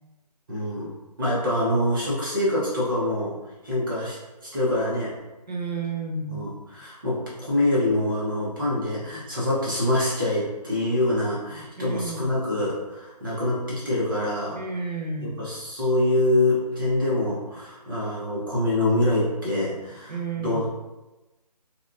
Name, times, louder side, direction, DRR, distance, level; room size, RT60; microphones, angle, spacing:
voice 1, 0.5-0.9 1.2-3.4 3.6-5.1 6.3-14.6 15.2-20.7, left 1 dB, 30° right, -6 dB, 0.8 m, -25 dB
voice 2, 5.5-6.5 11.8-12.3 14.6-15.5 20.1-20.6, right 3 dB, 90° right, 0 dB, 0.5 m, -31 dB
2.8 x 2.3 x 2.4 m, 1.1 s
figure-of-eight pair, 150°, 21 cm